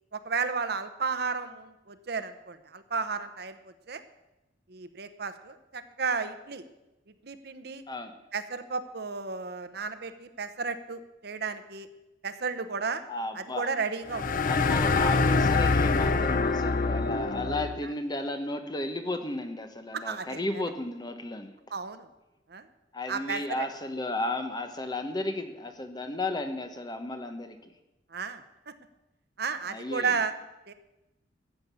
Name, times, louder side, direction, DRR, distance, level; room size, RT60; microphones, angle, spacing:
voice 1, 0.1-3.6 3.9-4.0 4.7-6.6 7.2-7.8 8.3-11.9 12.2-13.0 13.3-14.3 19.9-20.6 21.7-22.1 22.5-22.6 23.1-23.7 28.1-28.7 29.4-30.3 30.7-30.8, right 5 dB, 60° right, 10 dB, 0.8 m, -33 dB
voice 2, 13.1-13.7 14.5-21.5 22.9-27.6 29.7-30.2, left 2 dB, 20° left, 7 dB, 1.0 m, -34 dB
sound 1, 14.1-17.8, left 4 dB, 45° left, 0.5 m, -25 dB
13.5 x 8.1 x 7.0 m, 0.97 s
head